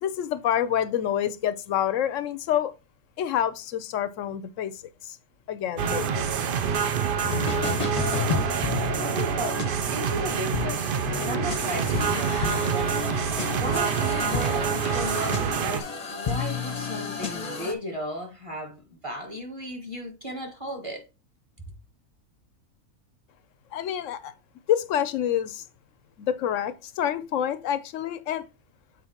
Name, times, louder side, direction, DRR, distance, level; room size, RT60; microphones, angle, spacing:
voice 1, 0.0-2.7 3.2-4.7 5.0-5.2 5.5-6.3 23.7-24.3 24.7-25.6 26.2-28.4, left 10 dB, 70° left, 0.8 m, -27 dB
sound 1, 5.8-15.8, right 7 dB, 75° right, 0.5 m, -27 dB
sound 2, 7.2-17.7, left 5 dB, 35° left, 0.7 m, -32 dB
voice 2, 9.0-13.0 13.5-21.0 21.6-21.7, equal, 20° right, 1.4 m, -35 dB
7.5 x 4.5 x 2.9 m
omnidirectional pair, 1.6 m